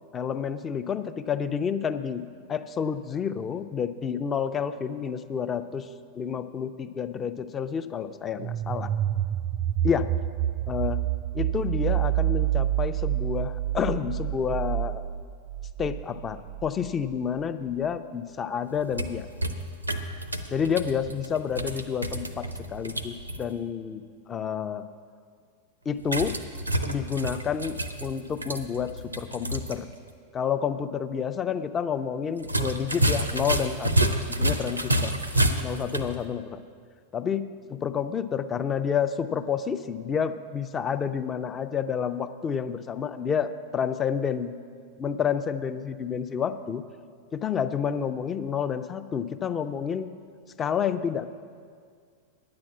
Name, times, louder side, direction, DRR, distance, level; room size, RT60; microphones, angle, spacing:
voice 1, 0.1-5.9 6.1-8.9 9.8-10.1 10.7-11.0 11.3-15.0 15.8-19.3 20.5-24.8 25.9-26.4 26.9-29.9 30.3-35.2 35.6-36.6 37.1-37.4 37.7-44.5 45.0-46.8 47.3-50.1 50.6-51.3, left 7 dB, 25° left, 11 dB, 0.6 m, -29 dB
sound 1, 8.4-17.1, right 13 dB, 40° right, 0.3 m, -28 dB
sound 2, 18.7-23.4 26.0-29.8 30.1-30.2 32.4-36.1, right 1 dB, 85° right, 0.7 m, -29 dB
10.0 x 8.8 x 7.2 m, 2.1 s
figure-of-eight pair, 90°, 0 cm